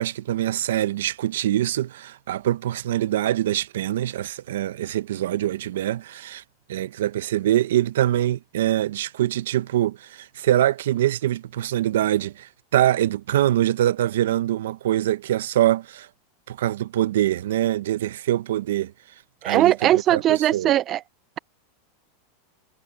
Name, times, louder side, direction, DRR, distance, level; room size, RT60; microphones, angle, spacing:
voice 1, 0.0-6.4 6.7-16.1 16.5-18.9 19.4-20.7, right 12 dB, 80° right, 1.0 m, -24 dB
voice 2, 19.4-21.0, right 12 dB, 35° right, 0.4 m, -19 dB
hypercardioid pair, 120°, 0 cm